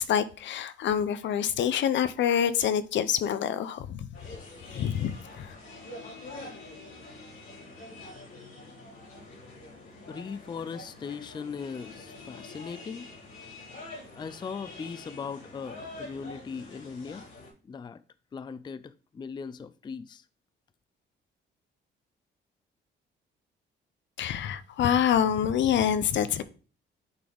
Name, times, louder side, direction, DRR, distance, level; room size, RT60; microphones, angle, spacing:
voice 1, 0.0-4.1 4.7-5.6 24.2-26.4, left 9 dB, 65° left, 0.6 m, -26 dB
sound 1, 4.1-17.5, left 2 dB, 85° left, 3.9 m, -46 dB
voice 2, 10.1-13.1 14.2-17.3 17.6-18.0 18.3-20.2, left 6 dB, 25° left, 0.4 m, -39 dB
9.0 x 3.9 x 3.4 m
cardioid pair, 90°, 20 cm